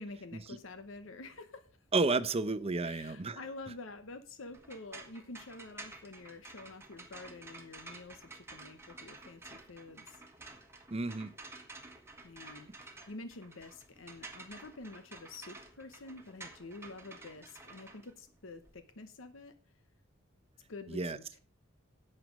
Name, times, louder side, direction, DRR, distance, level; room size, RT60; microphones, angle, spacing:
voice 1, 0.0-1.7 2.8-10.2 12.2-19.5 20.7-21.4, left 3 dB, 70° left, 0.9 m, -48 dB
voice 2, 1.9-3.4 10.9-11.3 20.9-21.2, right 3 dB, 30° right, 0.7 m, -31 dB
sound 1, 4.5-18.7, right 3 dB, 15° right, 1.4 m, -51 dB
11.0 x 7.6 x 5.2 m
head